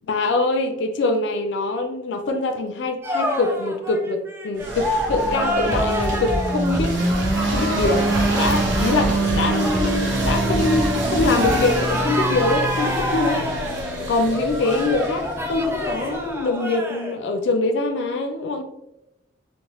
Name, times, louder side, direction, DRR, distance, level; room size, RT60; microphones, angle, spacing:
voice 1, 0.1-8.1 8.3-13.5 14.1-18.6, left 2 dB, 70° left, 6 dB, 0.3 m, -24 dB
sound 1, 3.0-17.2, equal, 15° right, 0.3 m, -28 dB
sound 2, 4.6-16.3, right 2 dB, 85° right, 0.6 m, -25 dB
sound 3, 5.7-12.1, equal, 45° right, 0.6 m, -29 dB
2.9 x 2.0 x 2.9 m, 0.89 s
head